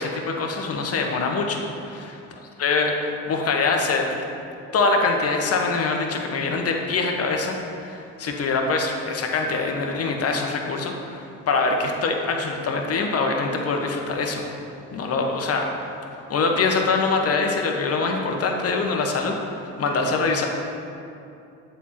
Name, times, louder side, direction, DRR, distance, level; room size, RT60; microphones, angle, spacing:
voice 1, 0.0-2.2 2.6-4.2 4.7-14.4 14.9-15.7 16.2-20.5, left 3 dB, 45° left, 2 dB, 1.0 m, -24 dB
7.2 x 4.4 x 4.3 m, 2.7 s
supercardioid pair, 70°, 35 cm